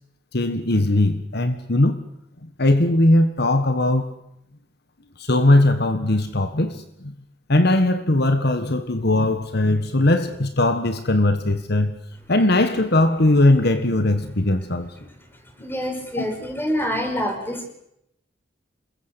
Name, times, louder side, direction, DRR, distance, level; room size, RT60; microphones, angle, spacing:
voice 1, 0.3-2.0 2.4-4.1 5.2-7.1 7.5-12.0 12.3-14.9 16.2-16.3, left 1 dB, 55° left, 1.5 m, -19 dB
voice 2, 15.6-17.7, equal, 10° left, 5.6 m, -26 dB
27.5 x 22.0 x 8.1 m
head